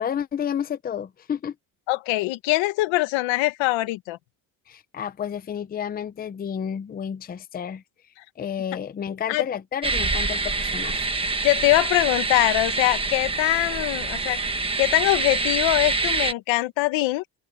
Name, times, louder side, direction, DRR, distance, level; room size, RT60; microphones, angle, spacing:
voice 1, 0.0-1.5 4.7-7.8 8.4-11.1, left 8 dB, 20° left, 0.6 m, -31 dB
voice 2, 1.9-4.2 9.3-9.4 11.4-14.4 14.8-17.2, left 19 dB, 85° left, 1.4 m, -22 dB
sound 1, 9.8-16.3, right 3 dB, 10° right, 1.3 m, -26 dB
open air
cardioid pair, 160°, 45 cm